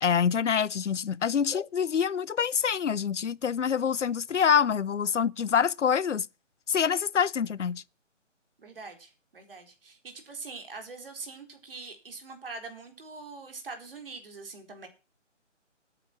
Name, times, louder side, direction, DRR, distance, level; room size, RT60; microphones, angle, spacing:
voice 1, 0.0-6.3 6.7-7.8, left 7 dB, 75° left, 0.7 m, -26 dB
voice 2, 8.6-14.9, right 4 dB, 50° right, 4.3 m, -43 dB
13.0 x 8.9 x 6.0 m
hypercardioid pair, 165°, 37 cm